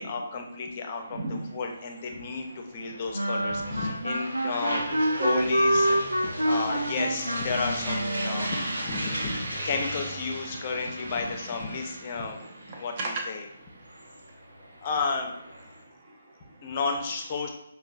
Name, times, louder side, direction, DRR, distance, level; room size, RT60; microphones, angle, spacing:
voice 1, 0.0-4.9 5.1-8.5 8.9-12.4 12.8-13.5 14.8-15.7 16.6-17.5, left 4 dB, 35° left, 3 dB, 0.5 m, -32 dB
sound 1, 1.0-15.8, right 1 dB, 65° right, 0.9 m, -38 dB
voice 2, 1.1-1.4 4.9-5.5 6.2-6.5 8.4-8.5 10.9-11.0 12.7-13.2 14.1-14.6 15.8-16.7, right 2 dB, 35° right, -1 dB, 0.7 m, -35 dB
sound 2, 3.1-8.8, right 1 dB, 85° right, 0.5 m, -27 dB
5.3 x 2.2 x 2.5 m, 0.79 s
figure-of-eight pair, 140°, 0 cm